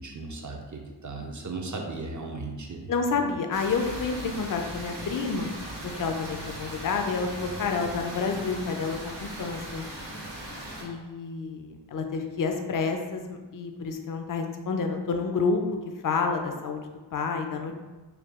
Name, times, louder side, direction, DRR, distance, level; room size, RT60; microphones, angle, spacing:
voice 1, 0.0-3.2, right 3 dB, 40° right, 1 dB, 0.6 m, -37 dB
voice 2, 2.9-5.5 5.8-9.8 10.8-15.6 16.0-16.8 17.1-17.7, left 4 dB, 45° left, 4 dB, 0.5 m, -29 dB
sound 1, 3.5-10.8, right 1 dB, 65° right, 1.3 m, -38 dB
4.7 x 2.3 x 3.5 m, 1.2 s
wide cardioid pair, 90°, 47 cm